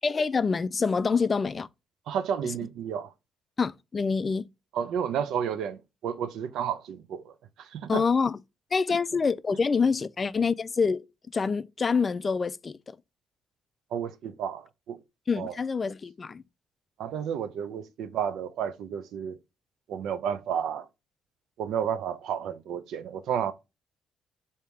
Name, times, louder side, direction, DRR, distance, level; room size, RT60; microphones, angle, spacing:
voice 1, 0.0-1.7 3.6-4.5 7.9-8.4 8.7-11.0 11.3-13.0 15.3-16.4, left 5 dB, 35° left, 0.3 m, -26 dB
voice 2, 2.1-3.1 4.7-8.1 8.9-9.0 13.9-15.0 15.4-15.6 17.0-19.4 19.9-20.9 21.6-23.5, right 8 dB, 80° right, 0.5 m, -31 dB
3.5 x 2.8 x 4.5 m
cardioid pair, 90°, 0 cm